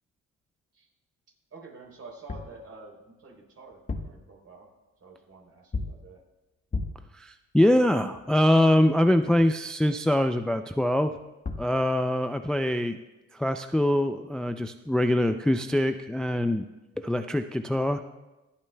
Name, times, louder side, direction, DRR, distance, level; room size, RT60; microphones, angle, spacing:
voice 1, 1.5-4.7 5.0-6.2, right 3 dB, 50° right, 1 dB, 3.5 m, -48 dB
sound 1, 2.3-2.6 3.7-4.3 5.7-6.1 6.7-7.1 11.1-11.2 11.4-11.8, left 3 dB, 25° left, 1.1 m, -33 dB
voice 2, 7.1-11.1 11.6-13.0 13.3-16.7 17.0-18.0, left 1 dB, 5° left, 8 dB, 0.3 m, -24 dB
26.0 x 8.7 x 2.2 m, 1.0 s
cardioid pair, 90°, 30 cm